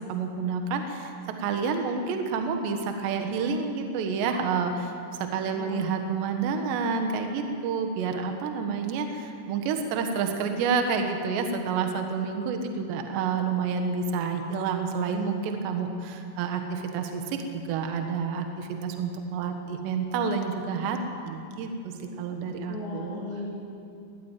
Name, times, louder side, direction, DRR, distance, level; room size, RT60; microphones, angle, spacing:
voice 1, 0.0-4.9 5.2-23.2, right 5 dB, 65° right, 5 dB, 3.3 m, -29 dB
voice 2, 5.6-5.9 22.7-23.5, left 3 dB, 80° left, -5 dB, 6.5 m, -36 dB
20.0 x 14.5 x 9.2 m, 2.4 s
omnidirectional pair, 5.9 m